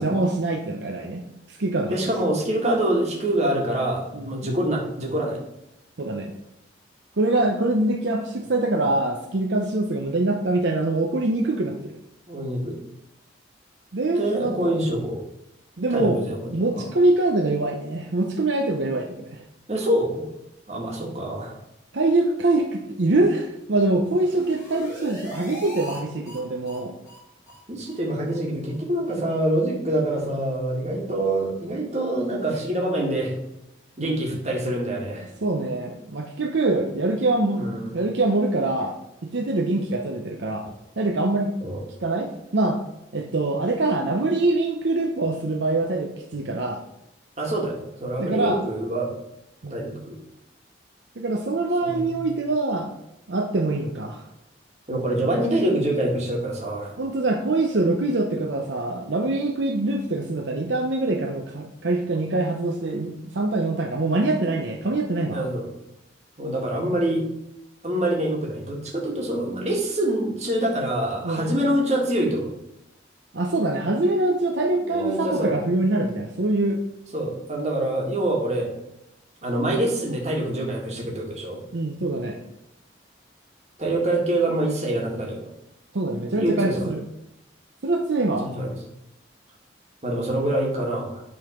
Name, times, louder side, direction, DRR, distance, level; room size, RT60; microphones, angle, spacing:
voice 1, 0.0-2.0 4.1-4.5 6.0-6.3 7.2-11.9 13.9-14.7 15.8-16.2 16.5-19.4 21.9-26.9 34.0-34.3 35.4-41.5 42.0-42.8 43.1-46.8 48.2-48.6 49.6-50.0 51.2-52.9 53.3-54.2 57.0-65.4 71.2-71.5 73.3-76.8 81.7-82.4 85.9-87.0 87.8-88.5, right 2 dB, 75° right, 2 dB, 0.8 m, -24 dB
voice 2, 1.9-5.4 12.3-12.8 14.2-15.2 15.9-16.4 16.7-16.8 19.7-20.2 20.7-21.5 27.7-33.3 34.0-35.3 37.5-37.9 41.6-41.8 47.4-49.1 49.7-50.2 51.8-52.3 54.9-57.0 65.3-65.7 66.4-67.2 67.8-72.6 74.8-75.7 77.1-78.7 79.4-81.6 83.8-85.5 86.4-86.9 88.4-88.8 90.0-91.2, right 1 dB, 35° right, -1 dB, 1.9 m, -25 dB
sound 1, 24.0-26.0 26.3-26.4 26.7-26.8 27.1-27.2 27.5-27.6 27.9-28.0 28.3-28.4 28.7-28.8 29.1-29.2, equal, 15° left, 2.2 m, -40 dB
10.5 x 3.9 x 5.0 m, 0.84 s
head